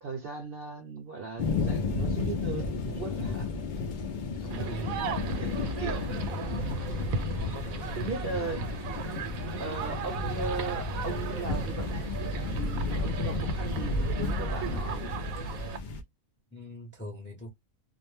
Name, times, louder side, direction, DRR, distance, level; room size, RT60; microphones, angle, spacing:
voice 1, 0.0-3.6 4.4-6.1 6.4-6.8 7.9-8.7 9.6-12.0 12.4-15.1, right 4 dB, 55° right, 0.7 m, -38 dB
sound 1, 1.4-16.0, left 3 dB, 85° left, 0.4 m, -32 dB
sound 2, 4.5-15.8, right 6 dB, 80° right, 1.0 m, -37 dB
voice 2, 4.6-5.1 7.4-8.2 16.5-17.5, equal, 15° left, 0.5 m, -42 dB
2.4 x 2.1 x 3.1 m
omnidirectional pair, 1.5 m